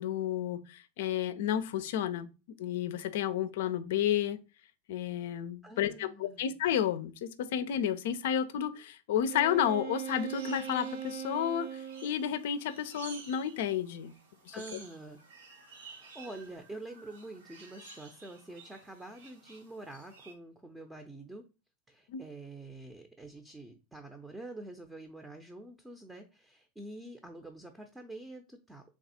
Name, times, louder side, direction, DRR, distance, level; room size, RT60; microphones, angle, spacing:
voice 1, 0.0-2.3 2.6-4.4 4.9-14.1 14.5-14.6 22.1-22.2, left 9 dB, 70° left, 0.4 m, -31 dB
voice 2, 5.6-6.5 14.5-15.2 15.7-21.4 21.9-28.8, right 2 dB, 10° right, 0.6 m, -47 dB
Wind instrument woodwind instrument, 9.3-12.2, right 10 dB, 65° right, 0.7 m, -39 dB
sound 1, 10.1-20.3, right 3 dB, 80° right, 1.2 m, -53 dB
3.4 x 2.3 x 4.2 m
hypercardioid pair, 95°, 0 cm